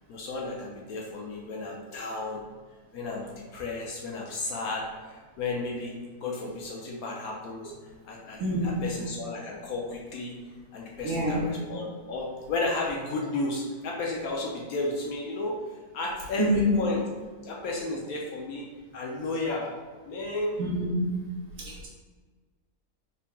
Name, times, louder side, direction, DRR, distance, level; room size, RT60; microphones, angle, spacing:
voice 1, 0.1-2.4 2.9-7.7 8.0-10.4 10.7-17.1 17.4-18.7 18.9-19.8 20.0-20.6, left 2 dB, 70° left, -2 dB, 0.8 m, -33 dB
voice 2, 8.4-8.9 11.0-11.4 16.4-16.7 20.6-21.1 21.6-21.9, equal, 65° right, -4 dB, 0.8 m, -26 dB
3.7 x 3.4 x 2.3 m, 1.5 s
omnidirectional pair, 1.9 m